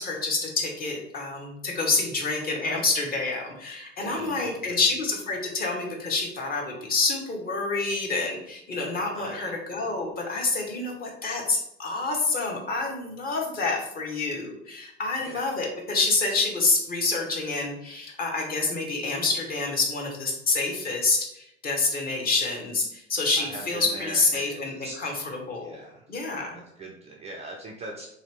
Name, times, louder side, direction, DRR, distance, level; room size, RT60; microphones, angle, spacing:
voice 1, 0.0-25.8 26.1-26.6, left 3 dB, 30° left, -1 dB, 1.0 m, -27 dB
voice 2, 4.0-4.8 9.1-9.5 15.2-15.4 23.4-25.1 25.6-26.0 26.5-28.2, right 2 dB, 20° right, 0 dB, 0.4 m, -41 dB
2.8 x 2.8 x 3.2 m, 0.77 s
figure-of-eight pair, 70°, 32 cm